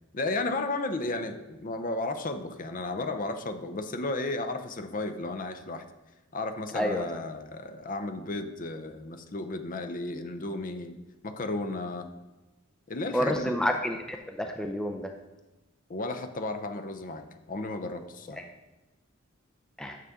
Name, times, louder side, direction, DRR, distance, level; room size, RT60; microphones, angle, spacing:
voice 1, 0.1-5.8 6.3-11.0 11.2-12.1 12.9-13.8 15.9-18.4, left 2 dB, 45° left, 8 dB, 0.7 m, -34 dB
voice 2, 6.7-7.0 13.1-15.1 18.4-18.5 19.8-20.0, equal, 5° left, 4 dB, 0.5 m, -29 dB
9.4 x 6.5 x 3.6 m, 1.1 s
head